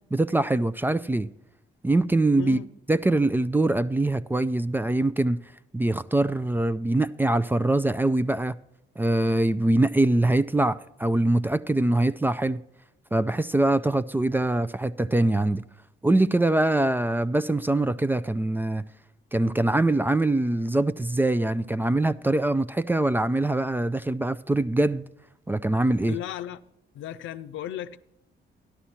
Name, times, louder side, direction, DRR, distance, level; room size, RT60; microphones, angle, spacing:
voice 1, 0.1-1.3 1.8-2.6 2.9-5.4 5.7-8.6 9.0-12.6 13.1-15.6 16.0-18.9 19.3-25.0 25.5-26.2, right 2 dB, 10° right, 0.3 m, -23 dB
voice 2, 2.4-2.7 26.1-26.6 26.9-28.0, left 11 dB, 80° left, 0.6 m, -35 dB
13.0 x 11.5 x 4.3 m
cardioid pair, 90°, 20 cm